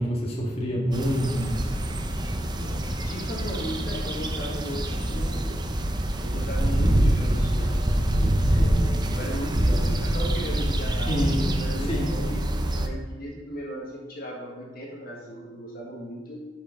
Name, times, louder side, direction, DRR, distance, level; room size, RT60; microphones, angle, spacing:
voice 1, 0.0-1.5 8.6-8.8 11.1-12.1, equal, 35° left, -3 dB, 1.9 m, -27 dB
sound 1, 0.9-12.9, right 1 dB, 25° right, 0.7 m, -25 dB
voice 2, 2.4-5.6 6.2-11.1 11.5-16.4, equal, 55° left, -2 dB, 1.8 m, -37 dB
10.5 x 5.8 x 5.2 m, 1.3 s
head